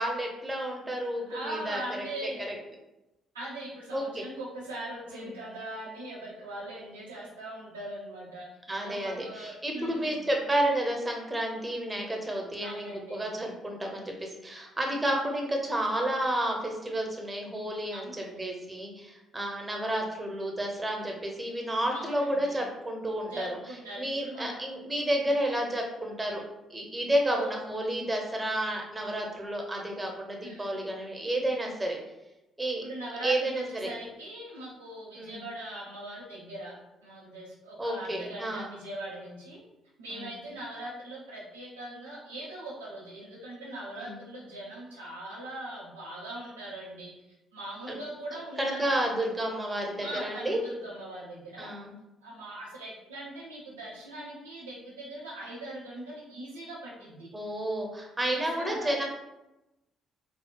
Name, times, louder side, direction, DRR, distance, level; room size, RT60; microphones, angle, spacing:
voice 1, 0.0-2.0 3.9-4.2 5.1-5.4 8.7-18.1 18.4-23.5 24.0-26.4 26.7-32.0 32.6-32.8 33.2-33.9 35.2-35.4 37.8-38.7 40.1-40.3 44.0-44.2 47.9-48.0 48.6-50.6 51.6-51.9 57.3-59.0, right 1 dB, 15° right, 1 dB, 0.8 m, -31 dB
voice 2, 1.3-2.5 3.3-8.5 8.8-10.2 12.6-13.2 17.9-18.4 21.9-22.6 23.2-24.6 27.2-27.5 30.4-30.9 32.7-39.6 40.0-47.1 47.5-49.1 50.0-51.7 52.2-57.3 58.3-59.0, right 1 dB, 80° right, -6 dB, 0.8 m, -41 dB
4.2 x 2.3 x 2.2 m, 0.96 s
figure-of-eight pair, 45°, 0 cm